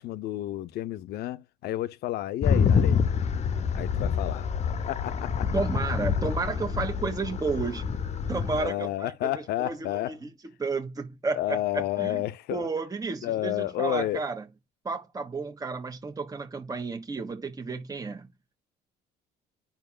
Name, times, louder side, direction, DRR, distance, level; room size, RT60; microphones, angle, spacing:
voice 1, 0.0-3.0 3.7-4.5 4.9-5.5 8.6-10.2 11.3-12.7 13.2-14.2, left 14 dB, 70° left, 0.7 m, -31 dB
sound 1, 2.4-8.7, left 6 dB, 40° left, 0.8 m, -27 dB
voice 2, 5.5-8.0 8.3-10.3 10.6-12.2 12.5-14.4 14.8-18.3, right 4 dB, 20° right, 1.3 m, -32 dB
8.9 x 5.9 x 2.3 m
cardioid pair, 110°, 17 cm